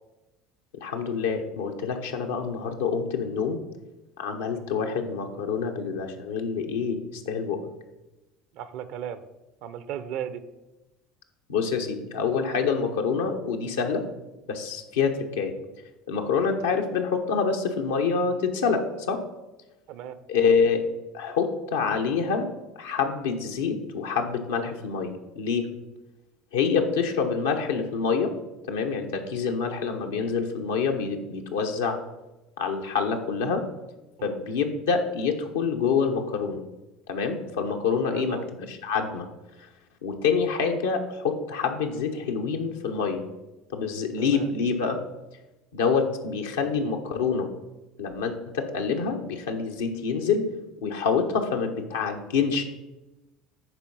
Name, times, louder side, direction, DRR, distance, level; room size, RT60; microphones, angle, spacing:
voice 1, 0.7-3.6 4.2-7.6 11.5-14.0 14.5-15.5 16.1-19.2 20.3-20.8 21.1-22.5 22.8-25.7 26.5-28.3 28.7-32.0 32.6-33.6 34.2-36.6 37.1-38.4 38.7-39.3 40.0-43.2 43.7-44.9 45.7-47.5 48.0-50.5 50.8-52.6, left 5 dB, 80° left, 3 dB, 1.1 m, -26 dB
voice 2, 8.5-9.2 9.6-10.4 19.9-20.2 34.2-34.4 38.1-38.4 44.2-44.5, right 9 dB, 60° right, 13 dB, 0.7 m, -36 dB
10.5 x 4.5 x 5.5 m, 1.0 s
hypercardioid pair, 70°, 0 cm